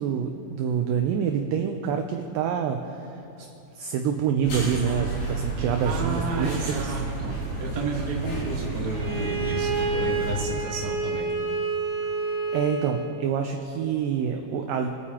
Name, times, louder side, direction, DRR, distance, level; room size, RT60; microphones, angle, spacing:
voice 1, 0.0-3.1 3.4-3.5 3.8-7.1 12.2-14.9, right 7 dB, 80° right, 4 dB, 2.1 m, -27 dB
sound 1, 4.4-10.6, right 3 dB, 75° left, 5.3 m, -31 dB
voice 2, 5.8-11.3, right 2 dB, 60° right, -2 dB, 1.0 m, -32 dB
Bowed string instrument, 8.9-13.1, right 4 dB, 20° right, 0.9 m, -29 dB
24.0 x 9.2 x 2.9 m, 2.8 s
omnidirectional pair, 4.3 m